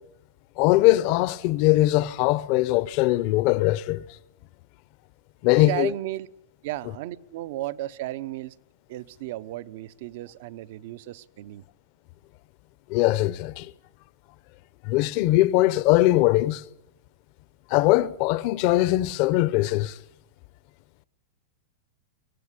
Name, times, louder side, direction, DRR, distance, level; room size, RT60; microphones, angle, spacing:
voice 1, 0.6-4.0 5.4-5.9 12.9-13.7 14.8-16.7 17.7-20.0, left 17 dB, 45° left, 0.8 m, -21 dB
voice 2, 5.6-6.3 6.6-8.5 8.9-11.6, right 15 dB, 55° right, 0.8 m, -34 dB
23.5 x 18.0 x 9.8 m
supercardioid pair, 160°, 0 cm